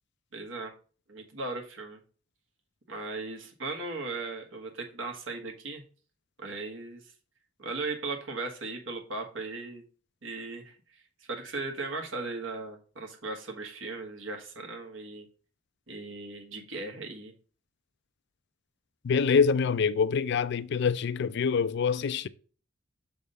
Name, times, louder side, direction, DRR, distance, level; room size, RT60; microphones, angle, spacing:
voice 1, 0.3-0.7 1.1-2.0 2.9-5.8 6.4-7.1 7.6-9.8 10.2-15.3 15.9-17.3, right 3 dB, 75° right, 1.4 m, -37 dB
voice 2, 19.0-22.3, left 6 dB, 60° left, 0.4 m, -25 dB
6.5 x 3.4 x 5.3 m
head